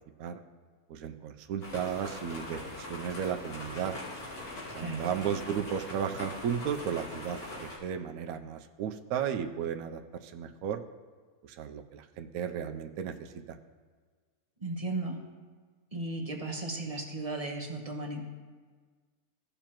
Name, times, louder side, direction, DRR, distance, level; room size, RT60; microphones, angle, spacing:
voice 1, 0.9-4.0 4.7-10.8 11.4-13.6, right 8 dB, 75° right, 6 dB, 1.0 m, -34 dB
sound 1, 1.6-7.8, left 1 dB, 80° left, 2.6 m, -42 dB
voice 2, 4.8-5.1 14.6-15.2 15.9-18.3, right 2 dB, 25° right, 0 dB, 1.0 m, -35 dB
15.5 x 6.8 x 2.9 m, 1.5 s
omnidirectional pair, 1.6 m